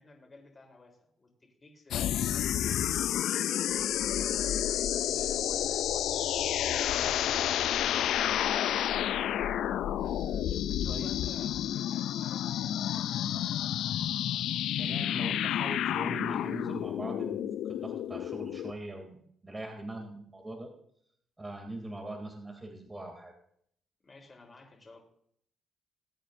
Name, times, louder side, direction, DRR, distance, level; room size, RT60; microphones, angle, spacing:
voice 1, 0.0-3.4 4.1-4.5 5.0-9.1 10.0-13.5 24.0-25.0, left 2 dB, 30° left, 1 dB, 3.9 m, -54 dB
sound 1, 1.9-18.7, left 11 dB, 75° left, 0.4 m, -30 dB
voice 2, 14.8-20.7 21.4-23.3, right 2 dB, 20° right, 2 dB, 2.9 m, -41 dB
21.5 x 8.6 x 2.7 m, 0.66 s
cardioid pair, 90°, 0 cm